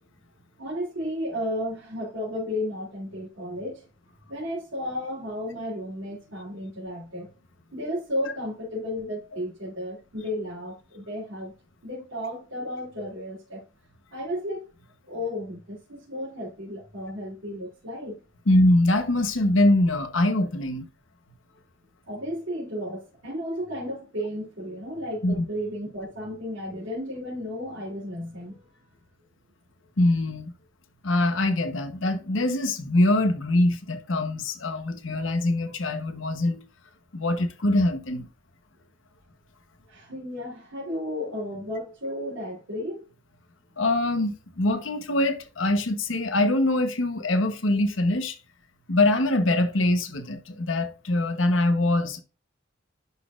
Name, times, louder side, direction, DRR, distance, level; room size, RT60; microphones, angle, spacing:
voice 1, 0.6-3.8 4.3-7.3 7.7-11.5 11.8-13.6 14.1-14.7 15.1-18.2 22.1-28.6 39.9-43.0, equal, 80° right, 3.3 m, -33 dB
voice 2, 18.5-20.9 25.2-25.3 30.0-30.5 31.0-36.6 37.1-38.3 43.8-48.3 48.9-52.2, left 1 dB, 80° left, 1.1 m, -23 dB
11.0 x 4.2 x 2.5 m
head